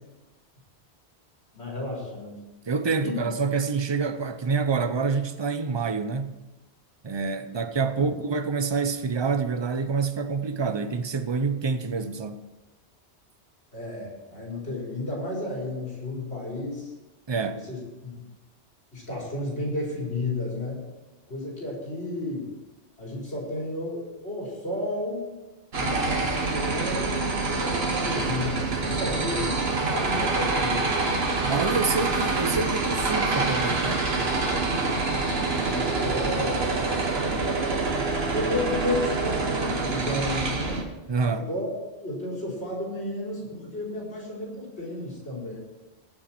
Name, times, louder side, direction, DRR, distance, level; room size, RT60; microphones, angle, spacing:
voice 1, 1.5-2.4 3.0-3.2 13.7-16.9 17.6-18.2 18.9-20.8 21.3-22.5 23.0-25.2 25.8-30.9 34.7-36.7 38.3-40.8 41.3-41.7 42.0-45.6, left 2 dB, 70° left, 4.7 m, -32 dB
voice 2, 2.7-6.4 7.0-12.4 17.3-17.7 31.5-34.1 41.1-41.5, right 4 dB, 30° right, 0.6 m, -27 dB
sound 1, 25.7-40.8, right 3 dB, 65° right, 1.5 m, -26 dB
20.5 x 7.2 x 4.4 m
omnidirectional pair, 1.1 m